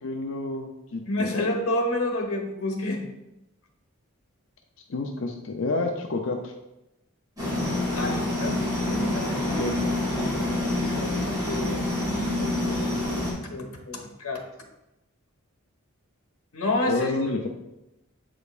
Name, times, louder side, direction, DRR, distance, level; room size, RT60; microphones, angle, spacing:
voice 1, 0.0-1.3 4.9-6.5 9.5-9.7 16.9-17.5, left 3 dB, 60° left, 3 dB, 0.5 m, -29 dB
voice 2, 1.1-3.0 7.9-8.6 8.9-9.5 10.2-10.5 10.8-11.1 11.5-11.8 13.4-14.4 16.5-17.1, left 1 dB, 75° left, 2 dB, 1.1 m, -29 dB
sound 1, 7.4-13.3, left 1 dB, 15° right, 2.2 m, -27 dB
8.1 x 5.0 x 2.5 m, 0.92 s
head